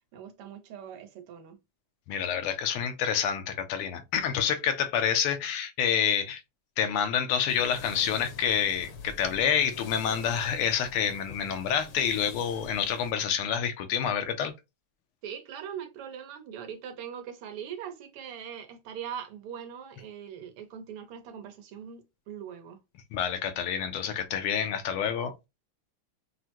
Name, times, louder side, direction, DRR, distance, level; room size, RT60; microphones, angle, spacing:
voice 1, 0.1-1.6 15.2-22.8, right 8 dB, 90° right, 1.8 m, -41 dB
voice 2, 2.1-6.4 6.8-14.5 23.1-25.3, left 8 dB, 85° left, 1.6 m, -28 dB
sound 1, 7.5-13.1, left 4 dB, 65° left, 1.4 m, -46 dB
6.0 x 2.1 x 2.9 m
omnidirectional pair, 2.4 m